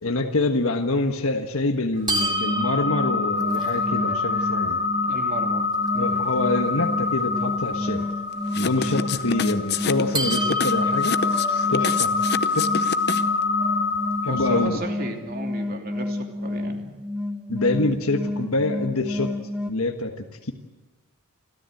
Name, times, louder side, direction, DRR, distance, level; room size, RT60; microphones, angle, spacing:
voice 1, 0.0-4.8 5.9-8.1 8.6-11.1 11.5-12.1 12.5-12.7 14.2-14.8 17.5-19.3 19.7-20.5, left 2 dB, 65° left, 4 dB, 1.5 m, -25 dB
sound 1, 2.1-14.7, left 3 dB, 20° right, 2.5 m, -26 dB
sound 2, 2.2-19.7, left 2 dB, 5° right, 1.5 m, -30 dB
voice 2, 5.0-5.7 14.3-17.0, right 2 dB, 45° right, 3 dB, 3.0 m, -34 dB
sound 3, 8.5-13.4, left 6 dB, 50° left, 0.8 m, -28 dB
29.0 x 13.5 x 8.0 m, 1.2 s
head